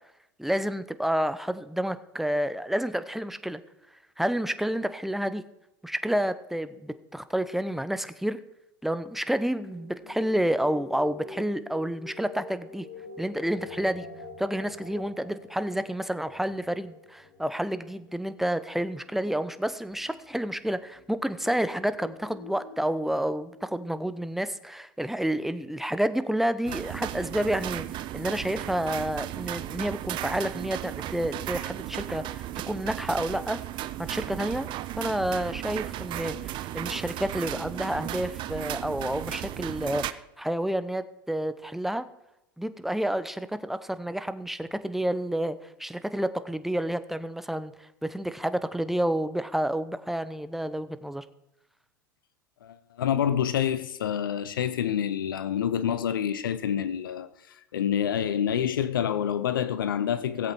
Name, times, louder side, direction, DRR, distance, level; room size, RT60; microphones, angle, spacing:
voice 1, 0.4-3.6 4.2-5.4 5.8-8.4 8.8-12.9 13.2-14.1 14.4-33.6 34.0-34.7 35.0-42.1 42.6-51.2, right 1 dB, ahead, 0.8 m, -29 dB
sound 1, 9.6-24.1, left 3 dB, 60° left, 2.8 m, -47 dB
sound 2, 26.7-40.1, right 14 dB, 45° right, 0.7 m, -35 dB
voice 2, 52.6-57.3 57.7-60.5, left 9 dB, 85° left, 0.7 m, -27 dB
17.5 x 8.0 x 4.4 m
hypercardioid pair, 90°, 11 cm